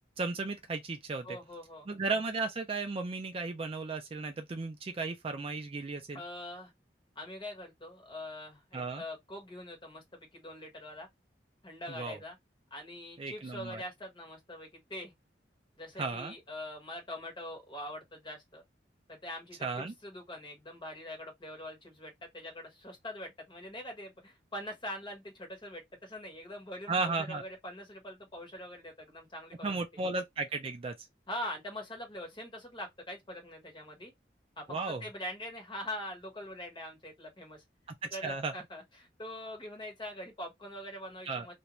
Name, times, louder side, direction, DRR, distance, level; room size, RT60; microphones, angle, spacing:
voice 1, 0.2-1.4 1.9-6.2 8.7-9.0 11.9-12.2 13.2-13.8 16.0-16.3 19.6-19.9 26.9-27.4 29.6-31.0 34.7-35.0 37.9-38.5 41.3-41.5, right 3 dB, 30° right, 0.4 m, -35 dB
voice 2, 1.2-1.9 6.1-6.7 7.1-11.1 11.6-12.4 12.7-15.1 15.8-18.6 19.1-30.0 31.3-34.1 34.6-37.6 38.1-41.5, left 1 dB, 25° left, 1.2 m, -43 dB
2.5 x 2.2 x 3.0 m
head